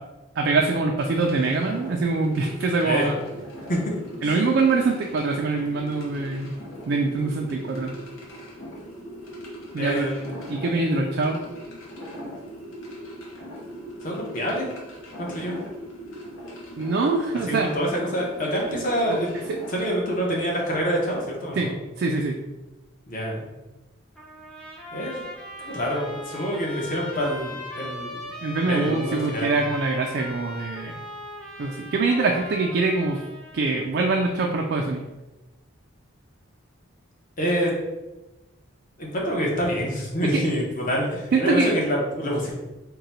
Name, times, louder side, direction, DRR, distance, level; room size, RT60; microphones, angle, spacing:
voice 1, 0.4-3.1 4.2-6.6 6.9-7.9 9.7-10.1 10.5-11.4 16.8-17.7 21.6-21.7 22.0-22.4 28.4-30.9 31.6-33.2 33.5-35.0 40.2-40.4 41.3-41.7, right 3 dB, 55° right, 1 dB, 0.3 m, -24 dB
sound 1, 1.0-19.9, equal, 75° left, 0.9 m, -40 dB
voice 2, 9.8-10.3 10.9-11.0 14.0-14.7 15.2-15.6 17.5-19.3 19.7-21.8 23.1-23.5 24.9-25.2 25.6-28.2 28.6-29.6 37.4-37.7 39.0-42.5, equal, 40° left, -2 dB, 0.9 m, -26 dB
Trumpet, 24.2-33.8, left 1 dB, 5° left, 0.6 m, -39 dB
3.8 x 2.2 x 4.1 m, 1.1 s
head